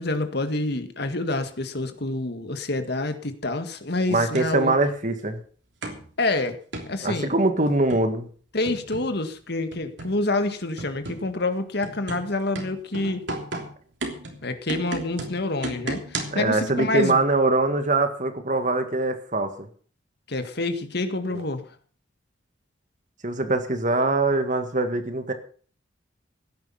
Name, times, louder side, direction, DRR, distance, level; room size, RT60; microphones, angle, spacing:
voice 1, 0.0-4.7 6.2-6.6 6.9-7.3 8.5-13.2 14.4-17.2 20.3-21.6, left 2 dB, 55° left, 9 dB, 1.9 m, -27 dB
voice 2, 4.1-5.4 7.0-8.3 16.3-19.7 21.3-21.4 23.2-25.3, right 2 dB, 40° right, 8 dB, 1.9 m, -23 dB
sound 1, 4.4-4.5 5.8-6.1 6.7-7.0 7.7-8.1 8.7-9.2 9.7-10.2 10.8-11.3 11.8-16.5, right 2 dB, 65° right, 3.2 m, -34 dB
16.5 x 10.5 x 5.6 m, 0.43 s
head